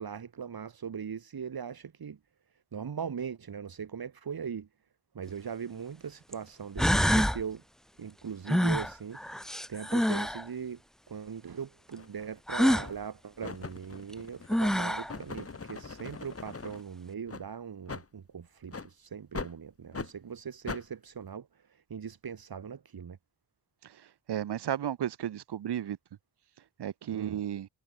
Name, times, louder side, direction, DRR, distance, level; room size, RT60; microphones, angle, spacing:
voice 1, 0.0-2.2 2.7-4.7 5.1-7.6 8.0-10.8 11.1-23.2 27.1-27.4, right 7 dB, 60° right, 4.9 m, -40 dB
sound 1, 5.3-5.4 6.3-6.4 6.8-7.4 8.5-10.4 12.5-12.9 14.1-14.2 14.5-15.1, equal, ahead, 0.7 m, -26 dB
sound 2, 11.9-12.1 12.8-13.1 13.4-16.8 17.3-17.4 17.9-18.1 18.7-18.9 19.3-19.5 19.9-20.1 20.7-20.8, left 4 dB, 35° left, 3.5 m, -41 dB
voice 2, 24.3-26.0 26.8-27.7, right 10 dB, 75° right, 1.6 m, -33 dB
cardioid pair, 75°, 40 cm